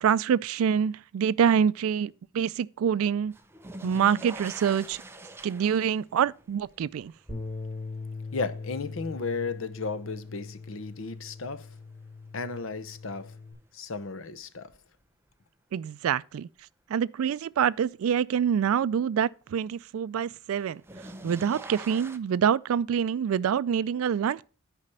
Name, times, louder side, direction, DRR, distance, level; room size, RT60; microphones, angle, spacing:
voice 1, 0.0-3.3 3.8-5.0 5.4-7.1 15.7-16.5 16.9-20.8 21.2-24.4, right 8 dB, 80° right, 0.3 m, -26 dB
sound 1, 3.3-10.3 10.8-11.5 13.1-13.2 14.7-14.8 20.5-22.2, right 1 dB, 10° right, 0.5 m, -45 dB
Bass guitar, 7.3-13.5, left 3 dB, 15° left, 4.6 m, -41 dB
voice 2, 8.3-11.7 12.3-13.3 13.7-14.7, left 4 dB, 70° left, 0.8 m, -34 dB
9.8 x 5.0 x 5.5 m
head